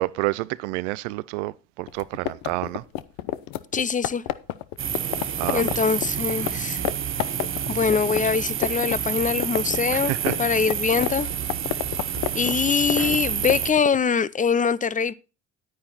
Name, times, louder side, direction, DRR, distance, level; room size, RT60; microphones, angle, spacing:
voice 1, 0.0-2.8 5.4-5.8 9.9-10.4, right 20 dB, 85° right, 0.6 m, -29 dB
sound 1, 1.9-6.5 6.8-6.9 7.2-9.0 9.2-14.0, left 15 dB, 70° left, 0.9 m, -29 dB
voice 2, 3.7-4.2 5.5-6.8 7.7-10.1 10.4-11.3 12.3-15.1, left 6 dB, 20° left, 0.7 m, -23 dB
sound 2, 4.8-13.7, right 9 dB, 35° right, 0.8 m, -28 dB
9.6 x 9.3 x 4.2 m
supercardioid pair, 75°, 35 cm